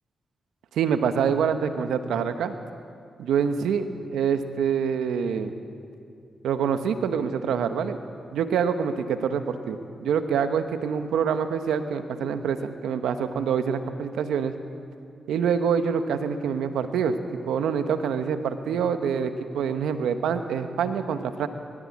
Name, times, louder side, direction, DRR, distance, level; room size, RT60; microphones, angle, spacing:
voice 1, 0.7-2.5 3.2-5.5 6.4-8.0 8.3-14.5 15.3-17.1 17.5-21.5, right 7 dB, 85° right, 9 dB, 1.0 m, -26 dB
22.0 x 15.0 x 8.5 m, 2.4 s
supercardioid pair, 45°, 0 cm